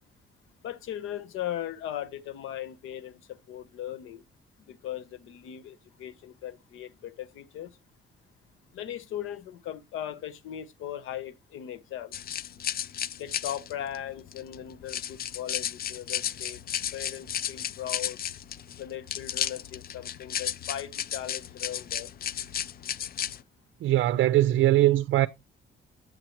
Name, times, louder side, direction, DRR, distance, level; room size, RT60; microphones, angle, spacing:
voice 1, 0.6-4.2 4.7-7.7 8.7-12.1 13.2-16.6 16.9-18.2 18.8-22.1, left 11 dB, 85° left, 0.8 m, -38 dB
sound 1, 12.1-23.4, left 10 dB, 50° left, 0.4 m, -34 dB
voice 2, 23.8-25.3, right 14 dB, 75° right, 0.5 m, -21 dB
7.7 x 7.6 x 2.9 m
cardioid pair, 90°, 20 cm